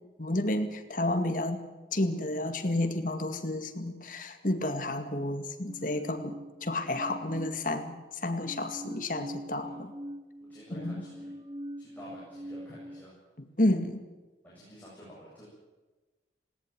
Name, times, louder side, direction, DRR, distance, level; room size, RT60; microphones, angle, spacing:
voice 1, 0.2-1.6 1.9-9.9 10.7-11.0 13.6-14.1, left 1 dB, 50° left, 7 dB, 2.2 m, -31 dB
sound 1, 5.7-8.0 8.4-13.0, equal, 25° right, 1.0 m, -43 dB
voice 2, 10.5-11.3 11.8-13.2 14.4-15.5, equal, 10° left, -7 dB, 8.0 m, -50 dB
19.5 x 18.5 x 9.5 m, 1.2 s
head